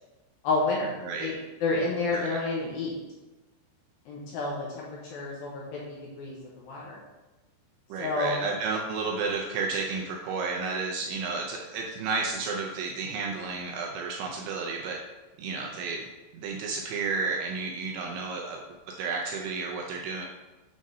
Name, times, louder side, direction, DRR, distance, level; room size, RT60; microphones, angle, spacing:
voice 1, 0.4-0.9 1.2-1.3 1.6-2.9 4.1-6.9 8.0-8.4, left 3 dB, 70° left, -4 dB, 2.4 m, -30 dB
voice 2, 1.0-1.3 2.1-2.4 7.9-15.0 15.4-16.1 16.3-18.6 19.0-20.3, right 4 dB, 80° right, 0 dB, 2.4 m, -32 dB
7.4 x 3.7 x 5.3 m, 1.1 s
omnidirectional pair, 5.2 m